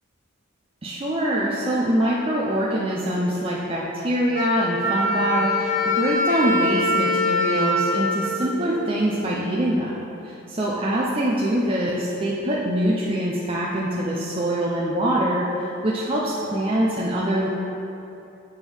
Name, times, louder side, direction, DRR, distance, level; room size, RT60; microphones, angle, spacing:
voice 1, 0.8-9.9 10.5-15.5 15.8-17.5, right 1 dB, 25° right, -5 dB, 0.5 m, -24 dB
Wind instrument woodwind instrument, 4.3-9.1, left 1 dB, 40° left, 0.8 m, -24 dB
7.1 x 3.6 x 6.1 m, 2.8 s
head